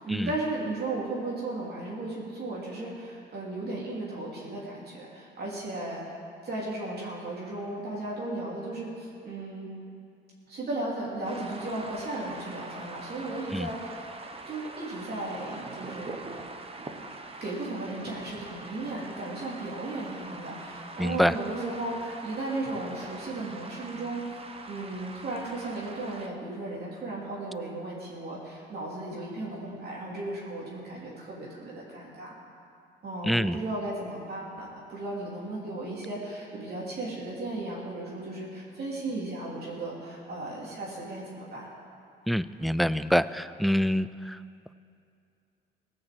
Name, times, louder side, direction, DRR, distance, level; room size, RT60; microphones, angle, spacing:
voice 1, 0.0-9.7 10.5-14.1 14.4-16.2 17.1-24.2 24.7-32.4 33.0-41.7, right 2 dB, 55° right, -5 dB, 3.2 m, -35 dB
sound 1, 11.2-26.3, right 3 dB, 30° right, 1.1 m, -43 dB
voice 2, 21.0-21.4 33.2-33.6 42.3-44.4, equal, ahead, 15 dB, 0.3 m, -26 dB
17.0 x 6.5 x 7.6 m, 2.5 s
cardioid pair, 90°, 20 cm